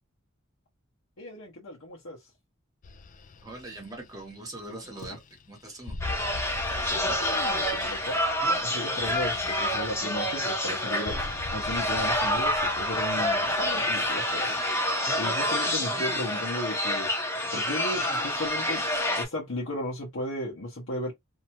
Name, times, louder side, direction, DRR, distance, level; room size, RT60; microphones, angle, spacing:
voice 1, 1.2-2.2 6.9-8.2 8.6-14.6 15.2-18.9 19.2-21.1, left 1 dB, 70° left, 1.0 m, -35 dB
sound 1, 2.8-15.5, left 3 dB, 40° left, 0.3 m, -43 dB
voice 2, 3.4-5.2 5.5-6.0 15.7-16.3, right 2 dB, 20° right, 0.8 m, -42 dB
sound 2, 6.0-19.3, left 1 dB, 15° left, 0.8 m, -28 dB
2.7 x 2.2 x 2.9 m
head